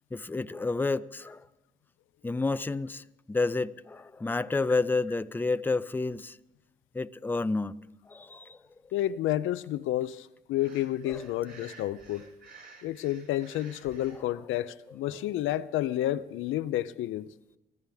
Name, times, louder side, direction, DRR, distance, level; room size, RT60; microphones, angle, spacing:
voice 1, 0.1-1.4 2.2-6.4 6.9-7.7 8.1-8.6, left 3 dB, 10° left, 0.5 m, -30 dB
voice 2, 8.9-12.3 12.8-17.3, left 13 dB, 85° left, 0.6 m, -30 dB
Breathing, 10.5-14.2, right 4 dB, 50° right, 5.7 m, -53 dB
24.5 x 14.5 x 3.5 m
cardioid pair, 90°, 20 cm